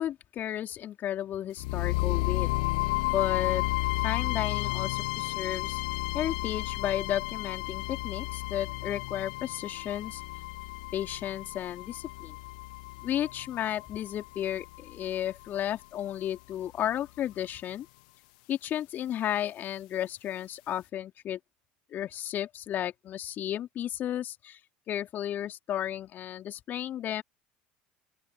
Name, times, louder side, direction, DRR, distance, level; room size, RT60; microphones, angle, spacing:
voice 1, 0.0-2.5 3.1-3.6 4.0-5.8 6.1-10.2 10.9-12.4 13.0-17.9 18.5-21.4 21.9-24.6 24.9-27.2, left 11 dB, 45° left, 3.3 m, -33 dB
sound 1, 1.6-15.6, left 23 dB, 65° left, 1.0 m, -32 dB
open air
figure-of-eight pair, 70°, 5 cm